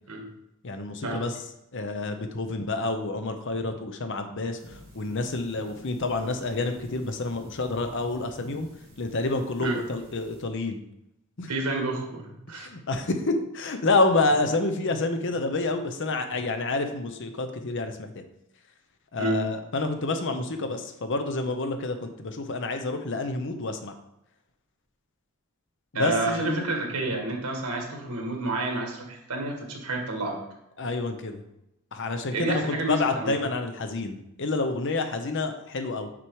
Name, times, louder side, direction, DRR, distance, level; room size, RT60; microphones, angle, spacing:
voice 1, 0.6-1.4 1.7-8.7 9.0-10.8 11.4-11.5 12.5-18.1 19.1-23.9 25.9-26.6 30.8-31.4 31.9-36.1, left 3 dB, 55° left, 7 dB, 0.8 m, -28 dB
sound 1, 4.6-10.4, equal, 25° right, 2.5 m, -51 dB
voice 2, 11.5-12.7 19.2-19.4 25.9-30.4 32.3-33.4, right 2 dB, 85° right, 2 dB, 1.7 m, -29 dB
6.1 x 4.8 x 4.7 m, 0.86 s
head